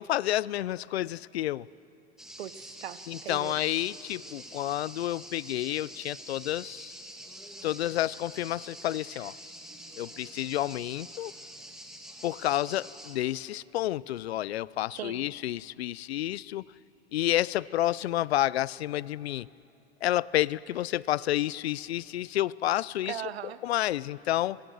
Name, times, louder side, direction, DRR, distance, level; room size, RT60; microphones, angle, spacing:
voice 1, 0.0-1.7 3.1-6.9 7.6-9.4 10.0-11.3 12.2-16.6 17.1-19.5 20.0-23.2 23.6-24.6, left 14 dB, 90° left, 22 dB, 0.5 m, -30 dB
sound 1, 2.2-13.2, equal, ahead, 2.7 m, -46 dB
voice 2, 2.4-3.6 9.1-9.2 15.0-15.3 23.1-23.6, right 11 dB, 85° right, 15 dB, 1.0 m, -39 dB
25.0 x 22.5 x 6.4 m, 2.6 s
hypercardioid pair, 115°, 31 cm